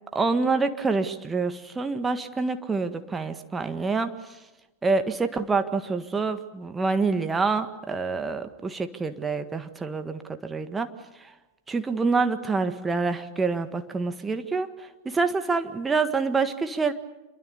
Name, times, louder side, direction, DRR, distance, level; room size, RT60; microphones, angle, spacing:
voice 1, 0.1-4.1 4.8-10.9 11.2-11.3 11.7-14.7 15.0-16.9, right 4 dB, 15° right, 8 dB, 1.6 m, -26 dB
27.0 x 23.0 x 6.9 m, 1.1 s
figure-of-eight pair, 90°, 0 cm